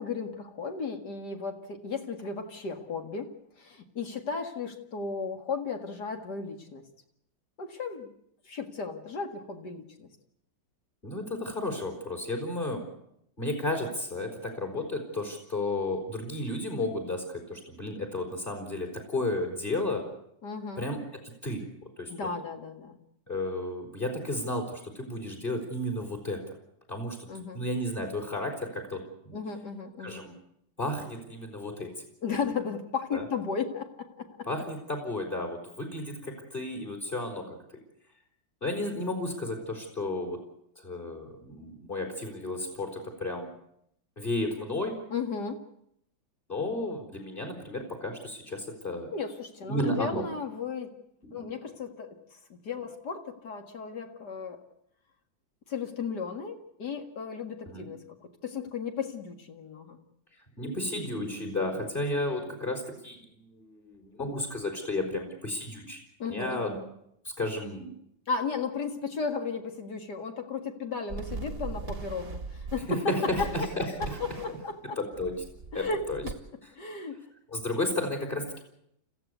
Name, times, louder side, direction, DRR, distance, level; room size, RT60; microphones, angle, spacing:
voice 1, 0.0-6.8 7.6-8.1 8.4-10.1 20.4-20.9 22.1-23.0 27.3-27.6 29.3-30.2 32.2-34.5 45.1-45.6 49.1-50.9 51.3-54.6 55.7-60.0 66.2-66.6 68.3-73.7 74.0-75.0 75.7-76.3 76.8-77.2, left 5 dB, 55° left, 5 dB, 2.5 m, -35 dB
voice 2, 11.0-12.8 13.4-20.0 20.8-21.6 22.0-22.1 23.3-26.4 26.9-27.3 27.5-29.4 30.0-30.3 30.8-32.0 33.1-33.2 34.5-37.5 38.6-40.4 40.8-43.5 44.2-45.0 46.5-49.1 49.7-50.3 51.2-51.4 57.7-57.9 60.6-66.0 66.3-66.8 67.2-67.9 73.1-73.8 74.5-74.6 75.0-75.4 75.7-76.2 77.5-78.6, left 1 dB, 25° left, 4 dB, 4.7 m, -33 dB
sound 1, 71.1-73.0 73.3-74.6 75.1-76.3, right 4 dB, 35° right, 1.3 m, -39 dB
26.5 x 15.0 x 8.2 m, 0.77 s
omnidirectional pair, 2.1 m